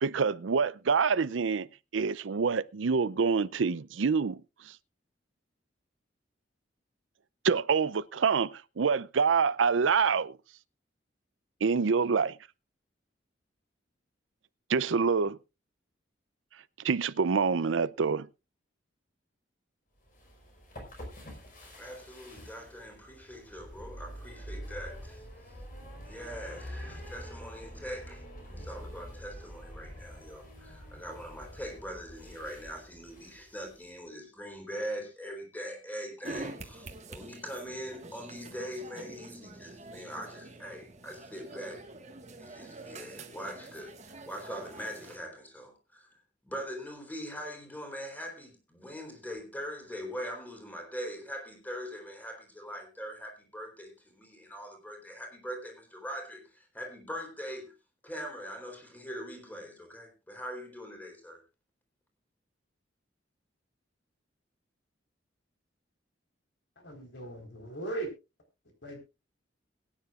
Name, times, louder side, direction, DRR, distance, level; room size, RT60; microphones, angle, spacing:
voice 1, 0.0-1.7 1.9-4.4 4.7-4.8 7.4-10.4 11.6-12.3 14.7-15.4 16.8-18.3, right 5 dB, 85° right, 0.5 m, -26 dB
sound 1, 20.0-33.9, equal, 45° left, 4.6 m, -46 dB
voice 2, 21.6-25.2 26.0-41.8 42.4-46.1 46.4-57.7 58.0-61.4, equal, 10° left, 3.6 m, -42 dB
sound 2, 36.2-45.2, right 2 dB, 35° right, 1.6 m, -46 dB
voice 3, 66.8-68.1 68.8-69.0, right 2 dB, 65° left, 4.3 m, -38 dB
22.0 x 9.8 x 2.5 m
head